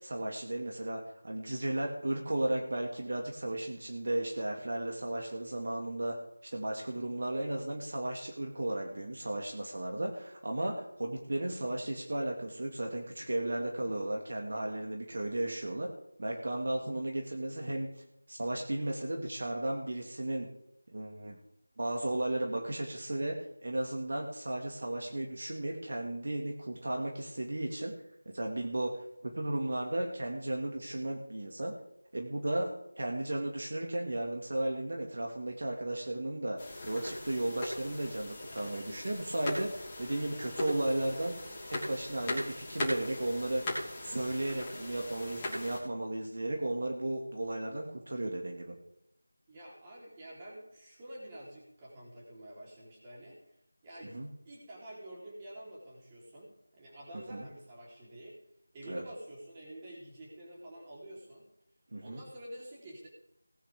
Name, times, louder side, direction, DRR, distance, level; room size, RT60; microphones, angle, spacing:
voice 1, 0.0-6.1 6.5-15.9 16.2-17.9 18.3-20.5 20.9-21.4 21.8-23.3 23.6-27.9 28.3-31.7 32.1-32.7 33.0-41.3 41.7-43.6 44.0-48.8 54.1-54.3 57.3-57.5 58.9-59.0 61.9-62.2, right 1 dB, 50° right, 1 dB, 2.2 m, -34 dB
sound 1, 36.6-45.8, left 1 dB, 15° left, 3.2 m, -40 dB
voice 2, 49.5-53.4 53.8-54.2 54.4-58.4 58.7-61.5 62.0-63.1, right 1 dB, 15° right, -5 dB, 3.9 m, -48 dB
18.5 x 9.9 x 3.7 m, 0.81 s
figure-of-eight pair, 170°, 0 cm